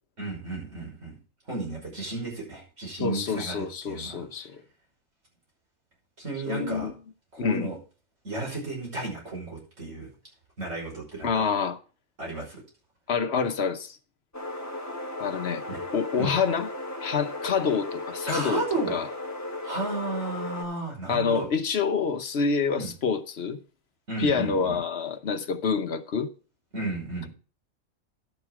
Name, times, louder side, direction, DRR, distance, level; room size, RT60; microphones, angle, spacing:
voice 1, 0.2-1.2 1.5-4.2 6.2-6.9 7.3-7.8 8.2-10.1 10.6-11.5 12.2-12.6 15.7-15.8 16.2-16.3 18.3-19.0 19.6-21.5 22.7-22.9 24.1-24.8 26.7-27.3, right 2 dB, 60° right, 6.0 m, -33 dB
voice 2, 3.0-4.6 6.5-6.9 7.4-7.7 11.2-11.8 13.1-14.0 15.2-15.6 15.9-16.7 17.0-19.1 21.1-23.6 24.2-26.3, left 5 dB, 55° left, 1.1 m, -27 dB
sound 1, 14.3-20.6, left 2 dB, 15° left, 1.1 m, -36 dB
12.0 x 6.7 x 4.7 m
omnidirectional pair, 1.4 m